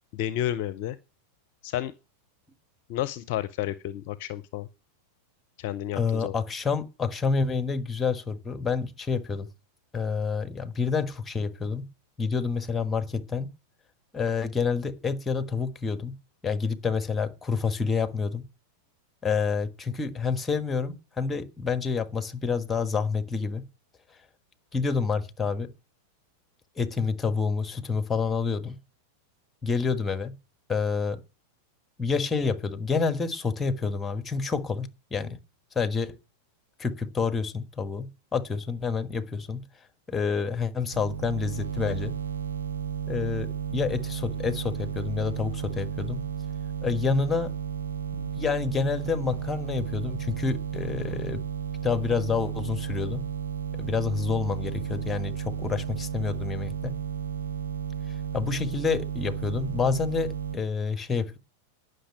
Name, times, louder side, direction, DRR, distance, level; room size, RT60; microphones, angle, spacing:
voice 1, 0.1-1.0 1.6-1.9 2.9-4.7 5.6-6.4, left 12 dB, 45° left, 0.6 m, -31 dB
voice 2, 5.9-9.5 9.9-11.8 12.2-13.5 14.1-16.1 16.4-18.5 19.2-23.6 24.7-25.7 26.8-28.8 29.6-30.3 30.7-31.2 32.0-35.4 35.7-36.2 36.8-39.6 40.1-42.1 43.1-46.2 46.8-47.5 48.1-51.4 51.8-53.2 53.8-56.9 58.3-61.4, left 5 dB, 15° left, 1.4 m, -28 dB
sound 1, 40.9-60.6, right 8 dB, 70° right, 0.6 m, -33 dB
10.0 x 6.5 x 8.8 m
figure-of-eight pair, 90°, 0 cm